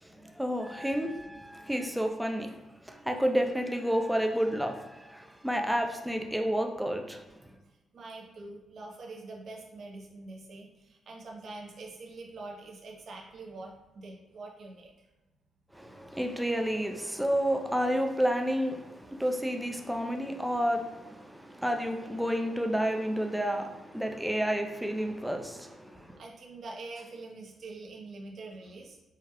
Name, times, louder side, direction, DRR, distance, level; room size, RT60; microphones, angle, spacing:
voice 1, 0.0-7.2 15.7-26.2, equal, 5° right, 0.4 m, -30 dB
voice 2, 7.6-15.1 26.2-29.0, right 3 dB, 55° right, 0.7 m, -45 dB
4.7 x 2.3 x 2.9 m
cardioid pair, 130°, 0 cm